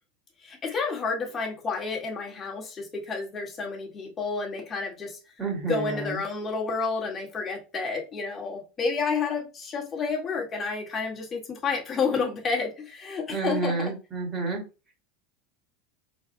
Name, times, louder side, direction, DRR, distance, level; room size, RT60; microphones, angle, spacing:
voice 1, 0.4-5.2 5.6-13.9, left 4 dB, 30° left, -1 dB, 1.8 m, -30 dB
voice 2, 5.4-6.2 13.3-14.6, right 4 dB, 25° right, 0 dB, 2.6 m, -30 dB
4.5 x 4.1 x 2.2 m, 0.30 s
hypercardioid pair, 85°, 0 cm